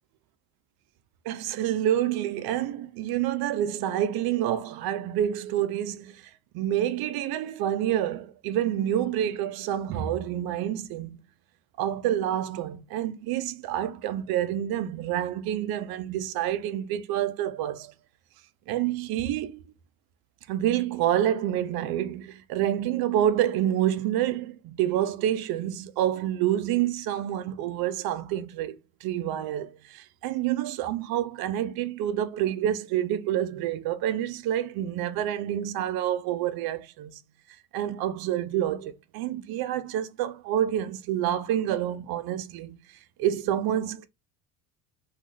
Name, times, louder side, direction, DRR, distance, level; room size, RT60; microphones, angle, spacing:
voice 1, 1.2-11.2 11.8-17.9 18.7-19.6 20.5-37.2 37.7-42.8 43.2-44.1, right 11 dB, 60° right, 0.6 m, -28 dB
2.8 x 2.3 x 3.2 m
supercardioid pair, 85°, 42 cm